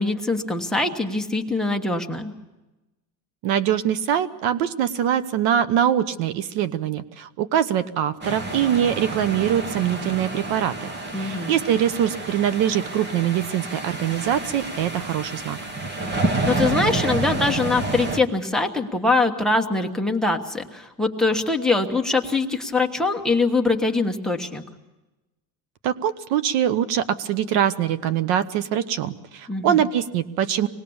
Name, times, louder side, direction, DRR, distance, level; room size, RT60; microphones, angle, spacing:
voice 1, 0.0-2.3 11.1-11.5 16.5-24.6 29.5-29.8, left 3 dB, ahead, 7 dB, 1.3 m, -23 dB
voice 2, 3.4-10.9 11.1-15.6 25.8-30.7, right 10 dB, 70° right, 14 dB, 1.1 m, -23 dB
sound 1, 8.2-18.2, right 2 dB, 25° right, 1.5 m, -29 dB
25.0 x 19.5 x 7.1 m, 1.1 s
cardioid pair, 150°, 43 cm